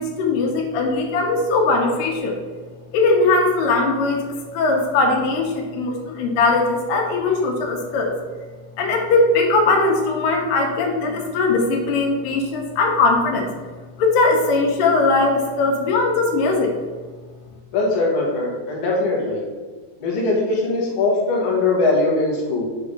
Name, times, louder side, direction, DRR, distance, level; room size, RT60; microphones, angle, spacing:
voice 1, 0.0-2.4 2.9-4.2 4.5-8.1 8.8-13.5 14.0-16.7, left 3 dB, 85° left, 2 dB, 2.4 m, -19 dB
voice 2, 17.7-19.4 20.0-22.6, left 3 dB, 50° left, -3 dB, 1.7 m, -21 dB
5.8 x 3.4 x 5.1 m, 1.4 s
omnidirectional pair, 3.9 m